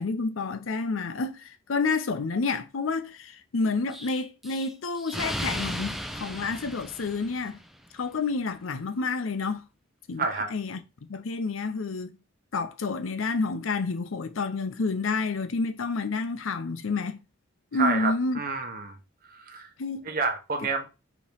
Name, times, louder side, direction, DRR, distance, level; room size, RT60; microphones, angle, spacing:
voice 1, 0.0-7.6 7.9-9.6 10.1-10.3 10.5-10.8 11.1-12.1 12.5-17.2 17.7-18.4 19.8-20.1, left 4 dB, 80° left, 0.6 m, -29 dB
Explosion, 3.9-7.8, equal, ahead, 0.4 m, -35 dB
voice 2, 10.2-10.5 17.7-19.0 19.3-19.7 20.1-20.9, right 4 dB, 45° right, 1.0 m, -29 dB
4.9 x 2.9 x 3.4 m
head